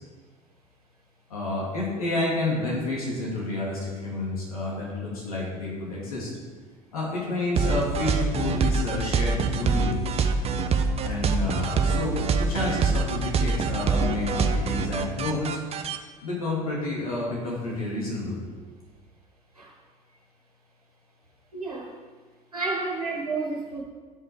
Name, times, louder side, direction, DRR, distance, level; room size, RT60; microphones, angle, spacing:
voice 1, 1.3-6.3 6.9-10.0 11.0-15.6 16.2-18.4, left 2 dB, 80° left, -4 dB, 2.5 m, -29 dB
sound 1, 7.6-16.0, right 4 dB, 35° right, 0.8 m, -25 dB
voice 2, 21.5-21.9 22.5-23.8, right 3 dB, 90° right, -3 dB, 1.4 m, -30 dB
11.5 x 5.5 x 4.7 m, 1.5 s
figure-of-eight pair, 65°, 18 cm